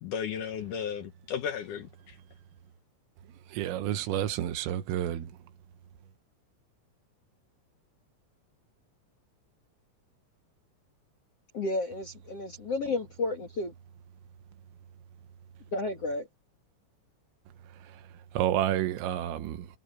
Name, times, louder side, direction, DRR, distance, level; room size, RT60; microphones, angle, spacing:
voice 1, 0.0-2.2, left 8 dB, 90° left, 1.7 m, -35 dB
voice 2, 3.5-5.3 18.4-19.7, right 11 dB, 85° right, 3.9 m, -29 dB
voice 3, 11.5-13.7 15.7-16.3, left 2 dB, 50° left, 1.9 m, -32 dB
omnidirectional pair, 5.7 m